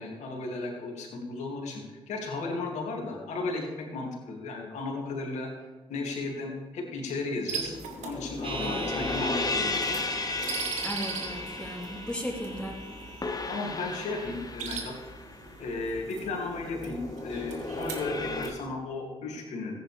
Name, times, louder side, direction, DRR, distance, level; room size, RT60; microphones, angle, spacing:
voice 1, 0.0-5.5 5.9-7.7 8.0-10.0 13.5-14.9 15.6-19.7, left 3 dB, 70° left, 1 dB, 2.4 m, -35 dB
sound 1, 7.5-18.5, right 6 dB, 70° right, 1.4 m, -41 dB
sound 2, 7.6-18.5, left 3 dB, 30° left, 1.3 m, -35 dB
sound 3, 8.4-14.3, right 4 dB, 45° right, 1.4 m, -42 dB
voice 2, 8.6-8.9 10.8-12.8, equal, 5° left, -3 dB, 3.4 m, -36 dB
14.5 x 9.1 x 3.4 m, 1.2 s
hypercardioid pair, 40°, 13 cm